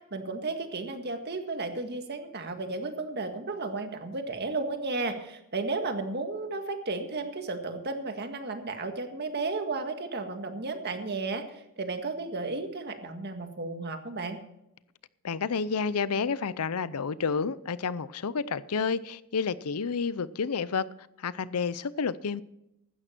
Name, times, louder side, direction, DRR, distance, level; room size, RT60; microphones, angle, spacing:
voice 1, 0.1-14.4, right 3 dB, 50° right, 1.8 m, -33 dB
voice 2, 15.2-20.9 21.2-22.4, left 5 dB, 85° left, 0.6 m, -30 dB
16.0 x 12.5 x 4.4 m
head